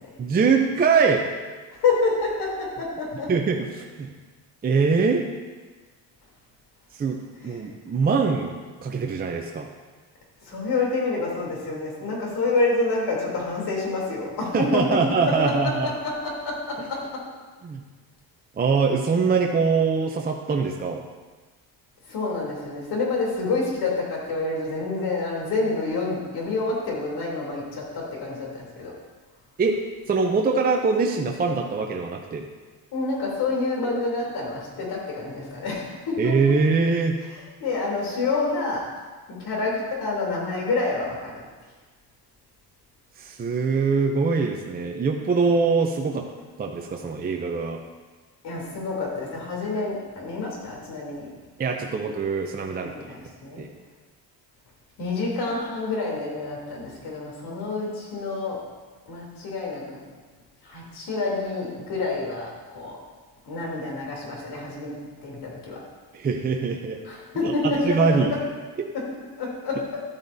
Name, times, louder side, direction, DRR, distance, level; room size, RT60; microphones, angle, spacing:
voice 1, 0.2-1.3 3.3-4.1 4.6-5.3 6.9-7.2 7.4-9.7 14.5-15.9 17.6-17.8 18.6-21.0 29.6-32.5 36.2-37.2 43.2-46.3 46.6-47.8 51.6-52.9 53.6-53.7 66.1-67.0 67.4-68.3 68.8-68.9, right 4 dB, 20° right, 2 dB, 0.6 m, -23 dB
voice 2, 1.7-3.3 10.4-15.0 15.3-17.3 22.1-28.9 32.9-36.3 37.6-38.8 39.3-41.3 48.4-51.3 52.8-53.6 55.0-58.6 59.1-59.8 60.6-63.0 63.5-65.8 67.0-68.2 68.9-69.1 69.4-70.0, left 3 dB, 65° left, -3 dB, 3.3 m, -28 dB
12.0 x 8.8 x 2.7 m, 1.4 s
cardioid pair, 135°, 42 cm